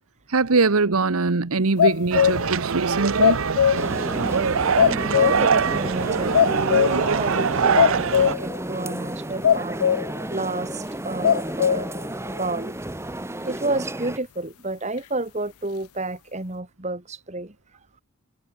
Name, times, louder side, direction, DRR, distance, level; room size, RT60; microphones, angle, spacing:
voice 1, 0.3-3.4 3.7-3.8, right 3 dB, 85° right, 1.1 m, -22 dB
sound 1, 1.8-2.6 2.9-4.0 4.3-4.4 4.8-5.6 5.9-6.0 6.3-7.2 7.5-8.6 8.9-9.0 9.4-10.2 10.6-10.7 11.2-12.0, left 8 dB, 85° left, 0.4 m, -20 dB
sound 2, 2.1-8.3, right 6 dB, 70° right, 0.6 m, -23 dB
sound 3, 3.8-14.2, right 1 dB, 10° right, 1.0 m, -32 dB
voice 2, 4.8-9.8 10.3-11.9 12.4-12.8 13.4-17.5, right 2 dB, 30° right, 2.1 m, -30 dB
head